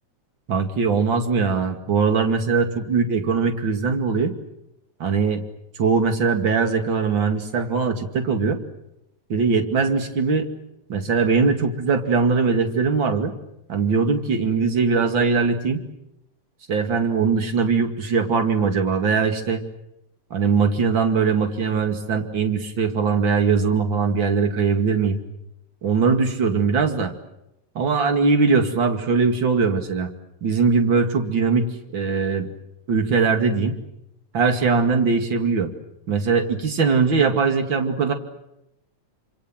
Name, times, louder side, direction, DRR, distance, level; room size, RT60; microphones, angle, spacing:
voice 1, 0.5-4.3 5.0-5.4 5.8-8.6 9.3-10.5 10.9-13.3 13.7-15.8 16.7-19.6 20.3-25.2 25.8-27.1 27.7-30.1 30.4-31.7 31.9-32.5 32.9-33.8 34.3-35.7 36.1-38.1, right 5 dB, 40° right, 6 dB, 2.8 m, -21 dB
27.5 x 26.5 x 7.6 m, 0.85 s
omnidirectional pair, 3.4 m